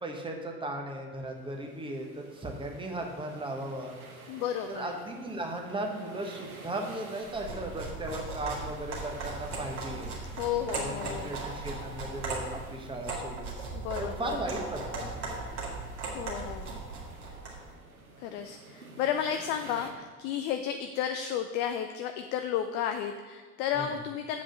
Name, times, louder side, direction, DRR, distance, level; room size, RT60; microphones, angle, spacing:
voice 1, 0.0-4.0 4.7-10.1 10.8-13.5 14.0-15.5 23.8-23.9, right 1 dB, 10° right, 1 dB, 1.2 m, -37 dB
sound 1, 1.3-19.9, right 3 dB, 85° right, 1.0 m, -51 dB
voice 2, 4.3-4.9 10.4-11.4 13.7-14.4 16.1-16.8 18.2-24.4, left 9 dB, 30° left, 7 dB, 0.3 m, -32 dB
sound 2, 7.3-17.6, right 3 dB, 40° right, 2.2 m, -38 dB
7.6 x 5.1 x 6.5 m, 1.4 s
figure-of-eight pair, 75°, 42 cm